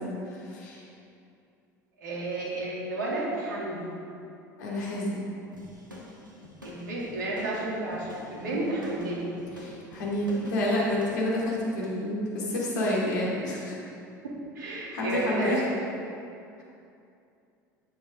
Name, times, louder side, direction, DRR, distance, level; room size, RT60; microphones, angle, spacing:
voice 1, 0.3-0.8 4.6-5.3 8.5-8.6 9.6-13.8 14.9-15.6, left 1 dB, 65° left, -4 dB, 3.0 m, -29 dB
voice 2, 2.0-3.9 6.6-9.3 14.5-15.6, right 2 dB, 70° right, -5 dB, 2.7 m, -32 dB
sound 1, 5.5-11.3, left 1 dB, 90° right, 1.7 m, -46 dB
13.0 x 9.7 x 3.7 m, 2.6 s
figure-of-eight pair, 70°, 10 cm